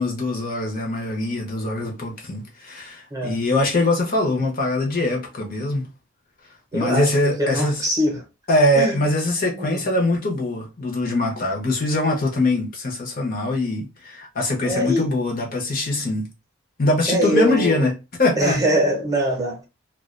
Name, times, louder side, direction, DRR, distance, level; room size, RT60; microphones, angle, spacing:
voice 1, 0.0-5.9 6.7-7.8 8.5-16.3 16.8-17.9 18.2-18.6, left 1 dB, 45° left, 0.7 m, -22 dB
voice 2, 3.1-3.4 6.7-7.1 7.4-8.2 8.7-9.0 9.6-9.8 14.6-15.1 17.1-17.8 18.4-19.6, equal, 15° right, 0.7 m, -22 dB
2.3 x 2.2 x 2.4 m
head